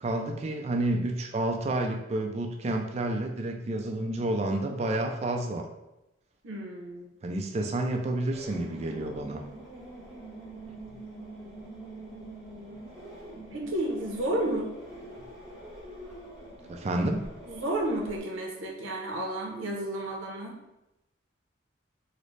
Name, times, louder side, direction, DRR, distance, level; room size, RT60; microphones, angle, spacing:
voice 1, 0.0-5.6 7.2-9.4 16.7-17.3, right 1 dB, 35° right, 3 dB, 0.3 m, -30 dB
voice 2, 6.4-7.1 13.5-14.7 17.5-20.6, right 1 dB, 90° right, 0 dB, 0.7 m, -32 dB
sound 1, 8.3-18.2, right 1 dB, 5° right, 0.7 m, -45 dB
3.8 x 2.0 x 3.1 m, 0.93 s
head